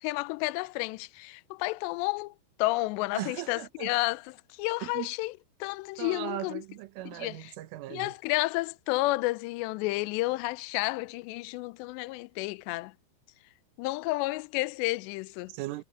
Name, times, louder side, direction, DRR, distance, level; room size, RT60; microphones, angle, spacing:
voice 1, 0.0-2.3 2.6-6.6 7.1-7.4 7.9-12.9 13.8-15.5, left 21 dB, 85° left, 2.5 m, -31 dB
voice 2, 3.1-3.9 4.8-5.1 6.0-8.1 15.5-15.8, right 15 dB, 85° right, 3.7 m, -38 dB
omnidirectional pair, 5.6 m